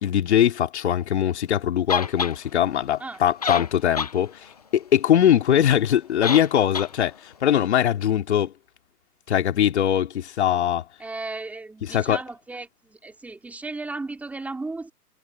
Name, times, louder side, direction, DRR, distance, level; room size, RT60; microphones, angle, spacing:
voice 1, 0.0-8.5 9.3-10.8 11.9-12.2, left 10 dB, 45° left, 2.9 m, -21 dB
sound 1, 1.9-2.4 3.1-3.2 3.4-4.2 4.5-4.6 6.2-6.5 6.7-6.9, left 5 dB, 25° left, 0.6 m, -27 dB
voice 2, 11.0-14.9, right 3 dB, 5° right, 2.7 m, -35 dB
hypercardioid pair, 155°, 48 cm